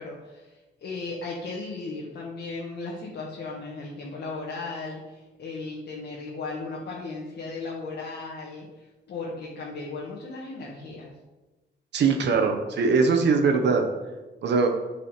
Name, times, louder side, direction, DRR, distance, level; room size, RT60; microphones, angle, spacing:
voice 1, 0.0-11.1, left 3 dB, 60° left, -3 dB, 1.6 m, -36 dB
voice 2, 11.9-13.9 14.4-14.7, right 4 dB, 65° right, 4 dB, 1.2 m, -21 dB
10.5 x 4.9 x 5.0 m, 1.1 s
cardioid pair, 140°, 19 cm